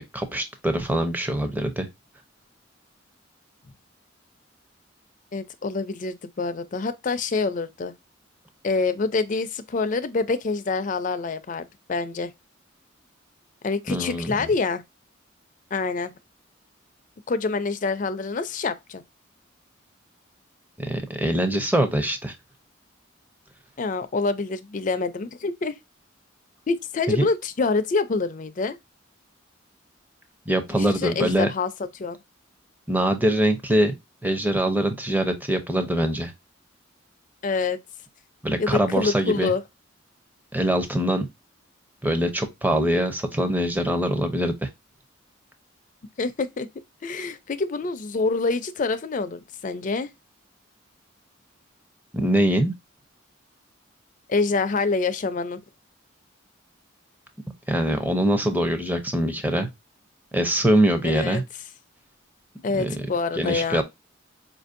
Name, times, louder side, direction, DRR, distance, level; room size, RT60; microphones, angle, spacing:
voice 1, 0.0-1.9 13.9-14.3 20.8-22.3 27.2-27.3 30.5-31.5 32.9-33.9 34.2-36.3 38.4-39.5 40.5-41.3 42.0-44.7 52.1-52.7 57.7-59.7 60.3-61.4 62.8-63.0 63.4-63.8, right 1 dB, 10° right, 0.6 m, -23 dB
voice 2, 5.3-7.9 8.6-12.3 13.6-14.8 15.7-16.1 17.3-19.0 23.8-25.7 26.7-28.8 30.7-32.2 37.4-37.8 38.6-39.6 46.2-46.7 47.0-50.1 54.3-55.6 61.0-61.4 62.6-63.8, left 4 dB, 40° left, 0.4 m, -26 dB
4.8 x 2.6 x 2.5 m
head